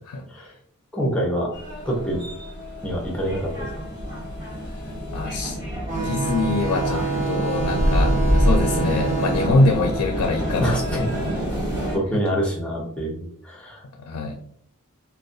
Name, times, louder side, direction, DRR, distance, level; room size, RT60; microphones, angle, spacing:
voice 1, 0.9-1.5 1.9-2.2 2.8-3.7 10.6-11.0 11.9-13.8, equal, 5° left, -3 dB, 0.6 m, -26 dB
sound 1, 1.5-12.0, equal, 15° right, 1.1 m, -26 dB
voice 2, 5.1-5.6 6.0-11.0 14.0-14.4, left 2 dB, 90° left, 2 dB, 0.4 m, -24 dB
sound 2, 5.9-11.0, right 3 dB, 35° right, 0.6 m, -28 dB
2.3 x 2.1 x 2.6 m, 0.68 s
head